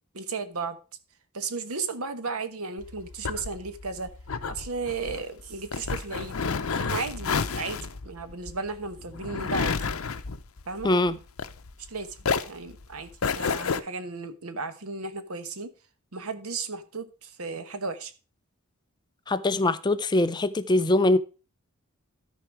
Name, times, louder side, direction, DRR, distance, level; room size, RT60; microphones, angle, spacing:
voice 1, 0.1-0.8 1.3-4.1 4.5-6.4 6.8-9.8 10.7-10.9 11.9-12.2 12.5-13.1 13.3-15.7 16.1-18.1, right 4 dB, 85° right, 1.2 m, -34 dB
sound 1, 2.8-11.9 12.2-13.8, left 5 dB, 70° left, 0.7 m, -30 dB
voice 2, 10.8-11.2 19.3-21.2, left 2 dB, 20° left, 0.4 m, -22 dB
13.5 x 4.7 x 4.6 m
head